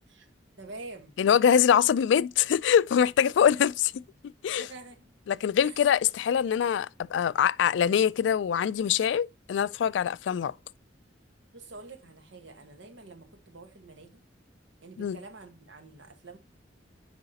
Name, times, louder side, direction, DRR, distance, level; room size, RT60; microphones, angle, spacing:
voice 1, 0.6-1.2 4.6-5.3 5.6-5.7 11.5-14.2 14.8-16.4, right 3 dB, 80° right, 1.4 m, -47 dB
voice 2, 1.2-4.0 4.4-4.6 5.3-10.5 15.0-15.2, left 8 dB, 75° left, 0.3 m, -24 dB
10.5 x 4.8 x 2.8 m
head